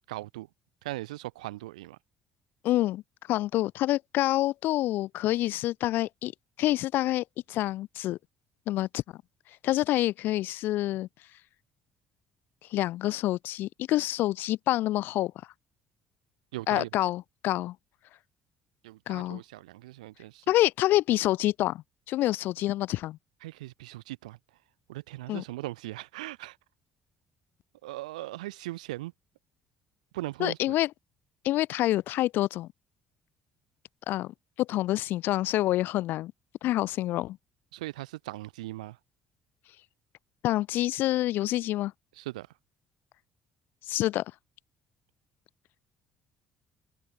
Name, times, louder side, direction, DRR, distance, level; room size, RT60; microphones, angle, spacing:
voice 1, 0.1-0.5 0.8-2.0 16.5-16.9 18.8-20.4 23.4-24.4 24.9-26.6 27.8-29.1 30.1-30.7 37.7-39.0 42.2-42.5, right 18 dB, 80° right, 0.7 m, -39 dB
voice 2, 2.6-3.0 3.3-6.3 6.6-8.2 8.7-9.0 9.6-11.1 12.7-15.3 16.7-17.8 19.1-19.4 20.5-23.2 25.3-25.4 30.4-30.9 31.4-32.7 34.1-36.3 36.6-37.4 40.4-41.9 43.9-44.2, left 15 dB, 60° left, 0.3 m, -27 dB
hypercardioid pair, 50°, 4 cm